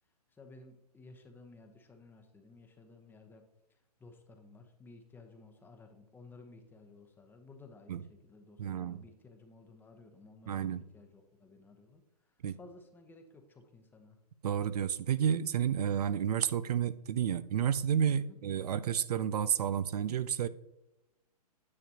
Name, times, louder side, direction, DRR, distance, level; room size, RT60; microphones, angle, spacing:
voice 1, 0.3-14.2 18.2-18.4, left 3 dB, 10° left, 5 dB, 0.8 m, -56 dB
voice 2, 8.6-9.0 10.5-10.8 12.4-12.6 14.4-20.5, right 9 dB, 75° right, 14 dB, 0.5 m, -31 dB
9.7 x 7.1 x 2.8 m, 0.94 s
hypercardioid pair, 125°, 20 cm